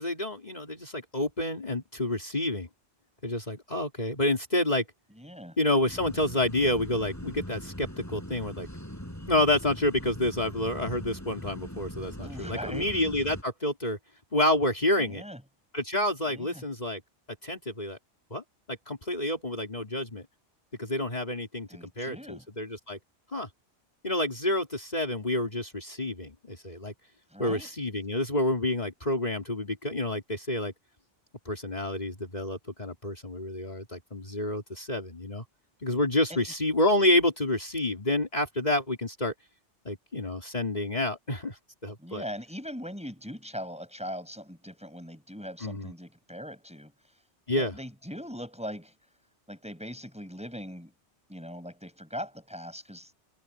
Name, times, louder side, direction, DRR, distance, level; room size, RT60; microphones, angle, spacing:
voice 1, 0.0-2.7 3.2-4.8 5.6-8.7 9.3-14.0 14.3-15.2 15.7-17.0 17.4-18.0 18.3-18.4 18.7-20.3 20.8-21.7 22.0-23.0 23.3-23.5 24.0-26.9 27.4-30.7 31.5-35.4 35.8-39.3 39.9-42.2 45.6-45.9 47.5-47.7, left 1 dB, 35° left, 3.9 m, -29 dB
voice 2, 5.2-5.6 12.2-13.0 15.0-15.4 16.3-16.6 21.7-22.5 27.3-27.7 36.3-36.4 42.0-46.9 47.5-48.9 49.5-50.9 51.3-53.1, equal, 5° right, 6.1 m, -40 dB
sound 1, 5.9-13.4, equal, 15° left, 6.1 m, -41 dB
omnidirectional pair, 1.2 m